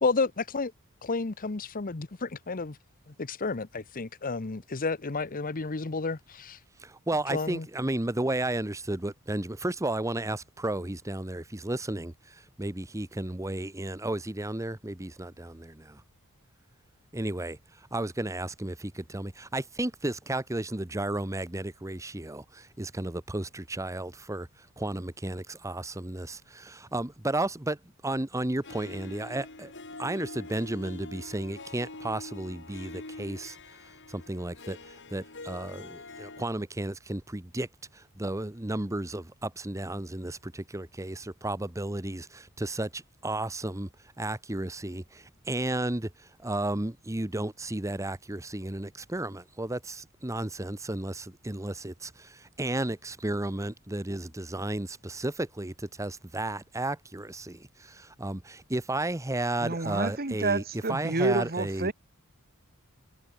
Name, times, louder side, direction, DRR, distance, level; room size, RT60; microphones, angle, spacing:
voice 1, 0.0-0.7 1.0-2.8 3.1-6.6 7.3-7.7, left 4 dB, 40° left, 0.8 m, -31 dB
voice 2, 6.8-16.0 17.1-27.8 28.0-29.7 30.0-37.7 37.9-43.9 44.2-60.6 60.9-61.9, right 1 dB, 15° right, 1.0 m, -33 dB
Harp, 28.6-36.4, left 2 dB, 55° left, 6.1 m, -45 dB
voice 3, 59.6-61.9, right 2 dB, 45° right, 1.9 m, -29 dB
head